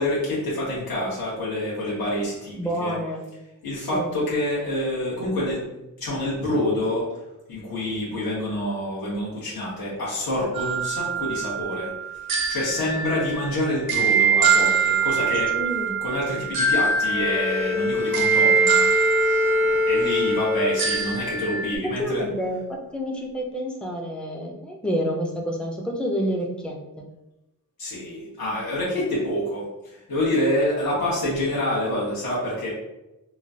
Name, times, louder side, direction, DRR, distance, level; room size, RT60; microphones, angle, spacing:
voice 1, 0.0-3.0 3.6-5.7 6.0-7.0 7.5-12.2 12.5-15.5 16.0-19.1 19.6-22.2 27.8-32.7, left 1 dB, 85° left, -8 dB, 1.3 m, -27 dB
voice 2, 2.6-3.2 3.8-4.1 15.5-16.0 22.0-27.0, equal, 5° left, 0 dB, 0.3 m, -29 dB
sound 1, 10.5-21.7, right 6 dB, 80° right, 0.6 m, -24 dB
Bowed string instrument, 16.9-21.4, left 4 dB, 50° left, 0.8 m, -25 dB
3.1 x 2.2 x 2.5 m, 0.95 s
wide cardioid pair, 160°, 35 cm